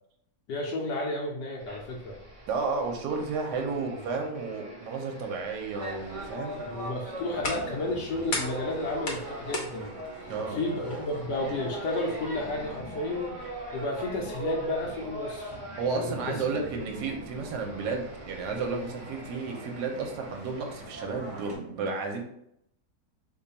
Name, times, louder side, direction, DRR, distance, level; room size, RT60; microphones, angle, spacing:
voice 1, 0.5-2.2 3.6-4.0 6.6-10.0 10.5-13.4 13.7-15.6 15.9-16.6, left 2 dB, 75° left, -1 dB, 1.2 m, -32 dB
sound 1, 1.6-20.9, right 2 dB, 45° right, 0.4 m, -49 dB
voice 2, 2.5-6.7 10.3-10.6 15.8-22.2, right 4 dB, 75° right, 3 dB, 1.2 m, -32 dB
sound 2, 5.7-21.6, right 1 dB, 25° right, 0.8 m, -41 dB
sound 3, 6.9-12.7, left 2 dB, 55° left, 0.9 m, -39 dB
3.1 x 2.2 x 3.9 m, 0.75 s
omnidirectional pair, 1.9 m